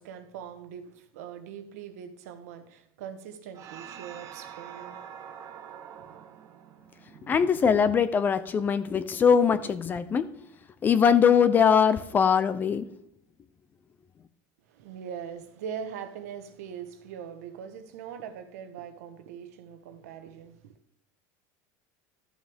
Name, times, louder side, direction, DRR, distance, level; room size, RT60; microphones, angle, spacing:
voice 1, 0.0-5.0 5.9-6.2 14.7-20.7, right 8 dB, 90° right, 1.2 m, -41 dB
sound 1, 3.5-8.3, right 8 dB, 40° right, 1.0 m, -46 dB
voice 2, 7.3-10.3 10.8-12.8, left 7 dB, 25° left, 0.6 m, -22 dB
13.5 x 6.3 x 3.6 m
supercardioid pair, 145°, 8 cm